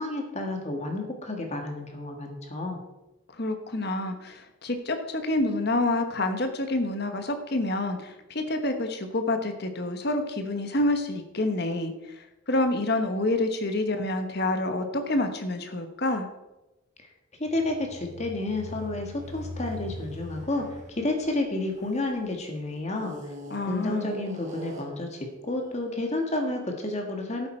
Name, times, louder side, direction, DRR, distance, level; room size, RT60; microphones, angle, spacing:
voice 1, 0.0-2.8 17.4-23.2 23.7-27.5, left 2 dB, 30° left, 3 dB, 1.7 m, -30 dB
voice 2, 3.4-16.3 23.5-24.2, left 2 dB, 50° left, 6 dB, 1.2 m, -28 dB
sound 1, 17.4-22.3 22.9-25.1, left 1 dB, 35° right, 2.5 m, -41 dB
12.0 x 9.0 x 4.4 m, 0.98 s
head